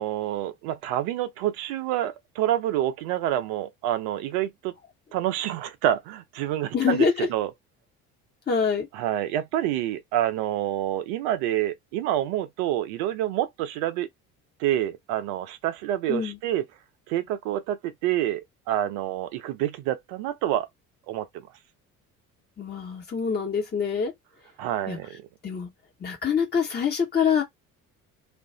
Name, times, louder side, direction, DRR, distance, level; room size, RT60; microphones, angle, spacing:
voice 1, 0.0-4.7 5.1-7.5 8.9-14.1 14.6-16.6 17.1-18.4 18.7-20.7 21.1-21.5 24.6-25.2, right 12 dB, 55° right, 0.7 m, -27 dB
voice 2, 6.7-7.3 8.5-8.9 16.1-16.4 22.6-24.1 24.9-25.0 25.4-25.7 26.0-27.4, left 6 dB, 20° left, 1.2 m, -25 dB
2.5 x 2.4 x 3.4 m
figure-of-eight pair, 55°, 44 cm